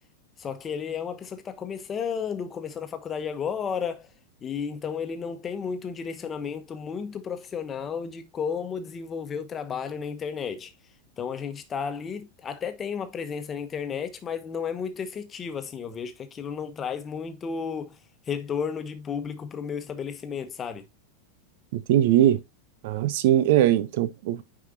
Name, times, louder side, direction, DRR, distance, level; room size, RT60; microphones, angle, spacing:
voice 1, 0.4-4.1 4.4-10.7 11.2-18.0 18.3-20.9, left 6 dB, 25° left, 1.2 m, -33 dB
voice 2, 21.7-22.4 22.8-24.4, right 12 dB, 50° right, 0.6 m, -21 dB
9.5 x 4.9 x 2.8 m
figure-of-eight pair, 90°, 0 cm